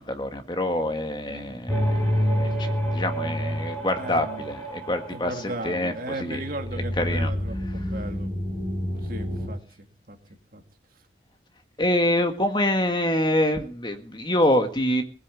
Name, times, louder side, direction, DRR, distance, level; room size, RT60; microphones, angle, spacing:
voice 1, 0.0-6.4 7.0-7.3 11.8-15.0, left 1 dB, 25° left, 7 dB, 1.6 m, -26 dB
voice 2, 1.3-1.7 3.9-4.5 5.1-8.3 8.9-10.2 10.5-10.6, right 1 dB, 50° right, 5 dB, 2.3 m, -37 dB
sound 1, 1.7-9.5, equal, 10° left, 6.0 m, -28 dB
19.5 x 8.2 x 8.5 m, 0.41 s
head